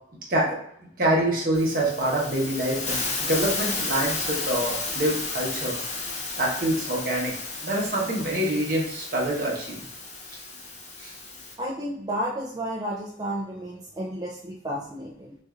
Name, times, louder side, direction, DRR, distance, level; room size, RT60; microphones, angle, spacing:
voice 1, 1.0-5.8 6.4-7.3 7.6-9.8 11.0-11.1, right 1 dB, 50° right, -2 dB, 0.9 m, -26 dB
Hiss, 1.5-11.5, left 3 dB, 40° left, 0.6 m, -33 dB
voice 2, 11.6-15.3, equal, 20° right, -5 dB, 0.4 m, -32 dB
4.2 x 2.5 x 2.4 m, 0.67 s
head